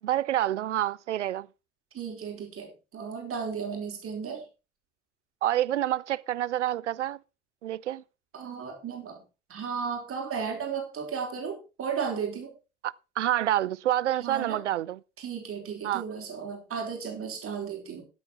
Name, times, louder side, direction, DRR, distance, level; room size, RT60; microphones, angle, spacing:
voice 1, 0.0-1.5 5.4-7.2 7.6-8.0 12.8-15.0 15.8-16.0, right 12 dB, 85° right, 0.5 m, -28 dB
voice 2, 1.9-4.4 8.3-9.2 9.5-12.5 14.2-14.6 15.2-18.0, right 6 dB, 40° right, 4.7 m, -34 dB
13.5 x 8.5 x 4.4 m
figure-of-eight pair, 65°, 35 cm